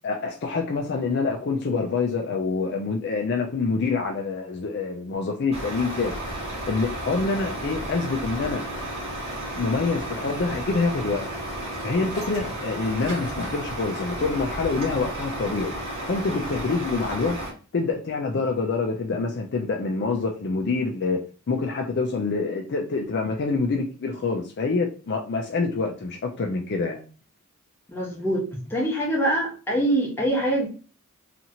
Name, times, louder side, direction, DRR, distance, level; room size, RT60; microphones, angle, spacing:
voice 1, 0.0-6.1 6.7-8.6 9.5-11.2 11.8-15.7 16.1-17.4 17.7-21.2 21.5-27.0, left 4 dB, 50° left, 0.4 m, -26 dB
Truck, 5.5-17.5, right 1 dB, 30° right, 1.1 m, -33 dB
voice 2, 27.9-30.7, right 1 dB, 10° left, 0.9 m, -24 dB
2.8 x 2.5 x 2.8 m
head